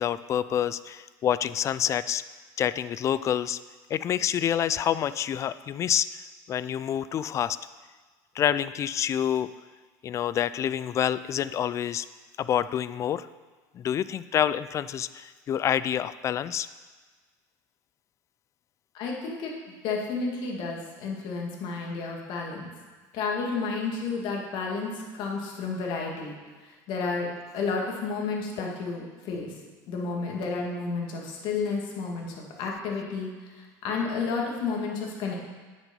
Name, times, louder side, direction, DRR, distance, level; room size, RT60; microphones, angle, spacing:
voice 1, 0.0-2.2 2.6-3.6 3.9-6.2 6.5-7.6 8.4-9.5 10.0-12.1 12.4-13.3 13.7-16.7, left 10 dB, 30° left, 16 dB, 0.3 m, -27 dB
voice 2, 18.9-19.5 19.8-22.7 23.1-26.4 26.7-27.3 27.5-29.5 29.9-35.3, left 4 dB, 55° left, -1 dB, 2.1 m, -31 dB
9.2 x 6.2 x 5.4 m, 1.4 s
supercardioid pair, 120°, 9 cm